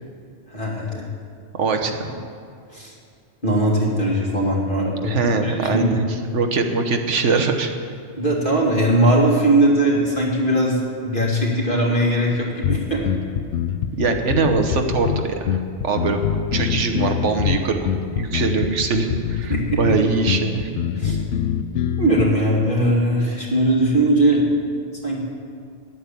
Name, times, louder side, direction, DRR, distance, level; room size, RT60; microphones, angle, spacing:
voice 1, 0.5-1.1 2.7-2.9 3.4-6.0 8.2-10.8 11.0-13.1 19.5-20.0 21.0-21.2 22.0-24.5 25.0-25.2, right 1 dB, 45° left, -4 dB, 2.7 m, -20 dB
voice 2, 1.5-2.1 5.0-6.0 6.3-7.7 13.9-15.5 15.8-16.2 16.5-20.7, right 4 dB, 90° right, 5 dB, 1.4 m, -22 dB
sound 1, 12.6-22.2, left 9 dB, 80° left, 0.9 m, -24 dB
11.0 x 8.6 x 8.5 m, 2.3 s
omnidirectional pair, 1.2 m